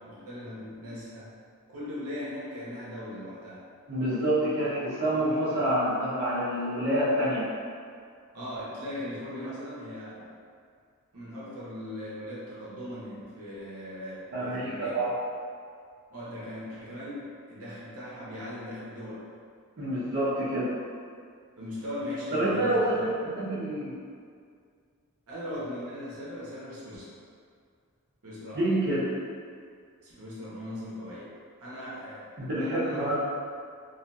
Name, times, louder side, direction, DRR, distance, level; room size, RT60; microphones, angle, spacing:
voice 1, 0.0-1.3 1.7-3.6 8.3-10.4 11.1-15.0 16.1-19.3 21.6-23.0 25.3-27.1 28.2-28.6 30.0-31.3 31.6-33.2, left 1 dB, 75° right, -8 dB, 0.8 m, -39 dB
voice 2, 3.9-7.5 14.3-15.1 19.8-20.7 22.3-23.1 23.4-24.0 28.5-29.1 32.4-33.2, right 1 dB, 50° right, -11 dB, 0.6 m, -27 dB
2.6 x 2.4 x 2.2 m, 2.1 s
head